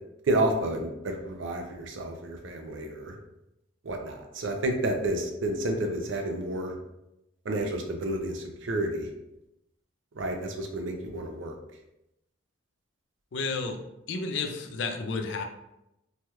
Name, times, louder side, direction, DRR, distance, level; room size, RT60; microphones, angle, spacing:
voice 1, 0.3-3.2 3.8-6.7 7.5-9.1 10.2-11.5, right 1 dB, 65° right, 3 dB, 0.5 m, -30 dB
voice 2, 13.3-13.8 14.1-15.4, left 4 dB, 60° left, 5 dB, 0.4 m, -31 dB
3.2 x 2.3 x 2.8 m, 0.88 s
head